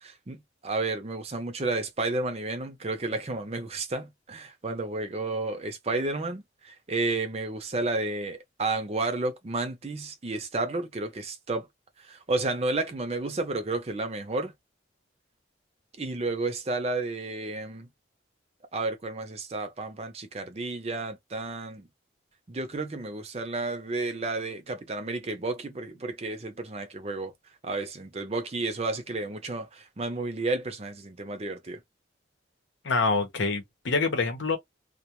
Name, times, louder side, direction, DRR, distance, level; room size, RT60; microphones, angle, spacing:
voice 1, 0.0-11.7 12.0-14.5 16.0-17.9 18.7-21.9 22.5-27.3 27.6-31.8, right 2 dB, 35° right, 0.5 m, -31 dB
voice 2, 32.8-34.6, left 4 dB, 80° left, 0.8 m, -26 dB
2.3 x 2.2 x 2.9 m
head